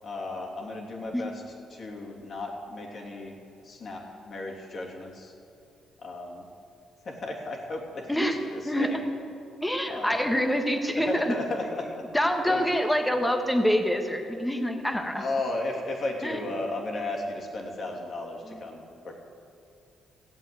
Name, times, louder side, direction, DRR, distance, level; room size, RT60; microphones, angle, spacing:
voice 1, 0.0-3.4 3.6-5.3 6.0-6.5 7.0-9.0 9.9-10.2 10.9-12.1 12.4-12.6 15.2-19.2, left 2 dB, 50° left, 0 dB, 2.9 m, -35 dB
voice 2, 9.6-11.3 12.1-15.2 16.2-16.4, equal, 5° left, 4 dB, 1.5 m, -26 dB
15.5 x 7.6 x 9.0 m, 2.5 s
cardioid pair, 90°, 0 cm